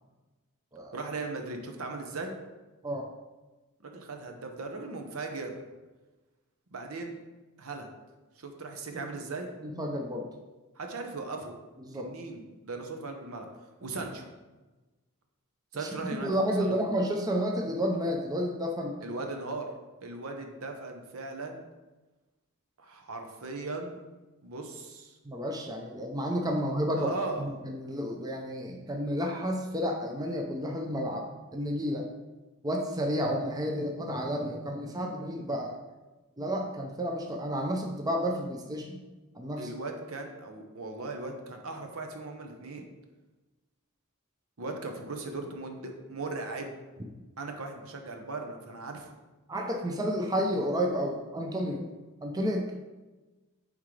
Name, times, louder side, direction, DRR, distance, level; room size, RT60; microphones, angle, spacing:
voice 1, 0.9-2.3 3.8-5.5 6.7-7.2 7.6-7.9 8.4-9.5 10.8-11.6 11.9-13.5 13.8-14.3 15.7-16.3 16.6-16.8 19.0-19.7 20.0-21.6 22.8-24.0 24.4-25.2 26.9-27.5 39.6-42.9 44.6-46.7 47.4-49.1, right 3 dB, 70° right, 4 dB, 0.9 m, -38 dB
voice 2, 9.6-10.3 11.8-12.1 15.8-15.9 16.2-19.1 25.2-32.1 32.6-35.8 36.4-39.0 39.3-39.7 49.5-51.8 52.2-52.8, equal, 15° right, 1 dB, 0.6 m, -31 dB
9.6 x 3.7 x 3.3 m, 1.2 s
head